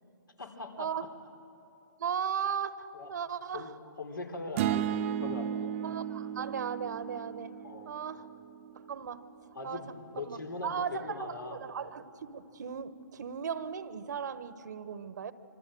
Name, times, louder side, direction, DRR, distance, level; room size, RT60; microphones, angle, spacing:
voice 1, 0.4-0.9 2.9-3.1 3.5-5.7 7.6-7.9 9.5-11.6, left 3 dB, 85° left, 3 dB, 3.7 m, -41 dB
voice 2, 2.0-3.7 4.6-4.8 5.8-7.6 7.8-8.3 8.7-9.3 9.6-9.8 10.2-15.3, right 7 dB, 60° right, 14 dB, 1.2 m, -37 dB
sound 1, 4.6-8.8, right 10 dB, 35° right, 0.8 m, -34 dB
26.0 x 24.0 x 7.8 m, 2.9 s
figure-of-eight pair, 135°, 11 cm